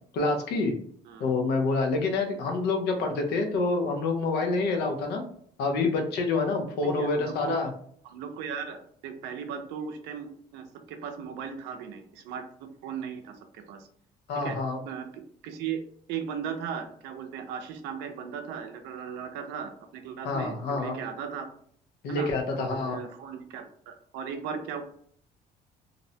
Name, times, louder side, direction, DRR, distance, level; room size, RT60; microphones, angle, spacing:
voice 1, 0.1-0.7 1.2-5.2 5.6-7.7 14.3-14.8 20.2-21.0 22.0-23.0, left 3 dB, 75° left, 4 dB, 0.6 m, -27 dB
voice 2, 6.8-7.6 8.0-12.4 12.8-13.9 14.4-14.6 14.9-15.8 16.1-21.5 22.1-24.8, right 7 dB, 90° right, 6 dB, 0.5 m, -37 dB
2.6 x 2.1 x 2.6 m, 0.62 s
cardioid pair, 110°, 17 cm